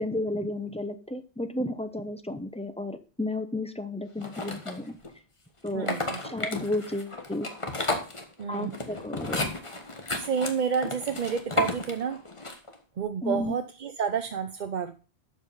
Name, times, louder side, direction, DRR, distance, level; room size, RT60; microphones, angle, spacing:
voice 1, 0.0-5.0 5.6-5.9 6.2-7.5 8.5-9.5 13.2-13.5, left 1 dB, 5° left, 9 dB, 0.8 m, -32 dB
sound 1, 4.2-5.1 5.7-12.8, left 2 dB, 30° left, 1.3 m, -33 dB
voice 2, 5.7-6.2 8.4-8.7 10.1-12.2 13.0-14.9, right 6 dB, 50° right, 8 dB, 0.7 m, -29 dB
12.0 x 5.2 x 5.6 m, 0.36 s
omnidirectional pair, 1.1 m